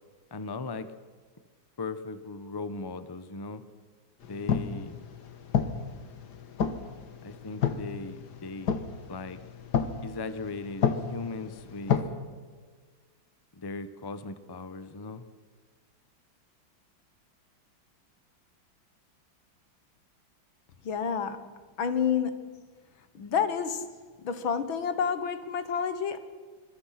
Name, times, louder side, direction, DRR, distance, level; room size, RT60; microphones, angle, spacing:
voice 1, 0.3-0.9 1.8-3.6 4.3-5.0 7.2-8.8 9.1-9.4 10.0-12.0 13.5-15.2, left 3 dB, 20° left, 12 dB, 0.7 m, -38 dB
sound 1, 4.2-12.0, left 7 dB, 60° left, 1.9 m, -31 dB
voice 2, 20.8-21.5 21.8-22.5 23.1-23.9 24.2-26.2, left 7 dB, 80° left, 11 dB, 2.2 m, -29 dB
25.5 x 22.5 x 5.9 m, 1.5 s
omnidirectional pair, 2.1 m